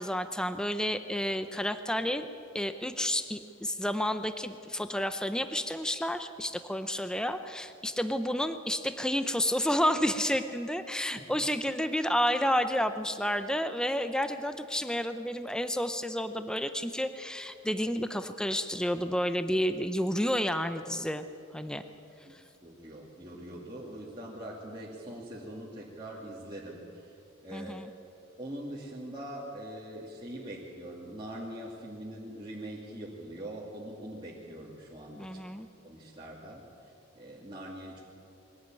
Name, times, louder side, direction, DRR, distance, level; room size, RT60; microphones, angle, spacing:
voice 1, 0.0-2.3 2.5-21.2 21.5-21.8 22.3-22.4 27.5-27.9 35.2-35.7, equal, 5° left, 9 dB, 0.6 m, -30 dB
voice 2, 11.2-11.5 22.6-27.8 28.4-35.4 35.8-38.0, right 1 dB, 20° right, -6 dB, 2.5 m, -43 dB
22.5 x 17.0 x 9.1 m, 2.6 s
head